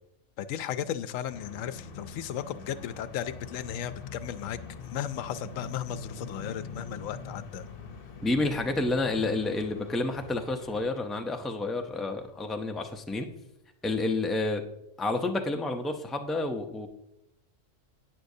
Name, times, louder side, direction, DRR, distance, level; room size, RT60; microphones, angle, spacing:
voice 1, 0.4-4.6 4.9-7.6, left 10 dB, 85° left, 13 dB, 1.0 m, -35 dB
sound 1, 1.3-10.9, left 4 dB, 50° left, 1.0 m, -43 dB
voice 2, 8.2-13.3 13.8-14.6 15.0-16.9, left 2 dB, ahead, 4 dB, 0.4 m, -29 dB
11.5 x 9.4 x 2.7 m, 0.86 s
omnidirectional pair, 1.3 m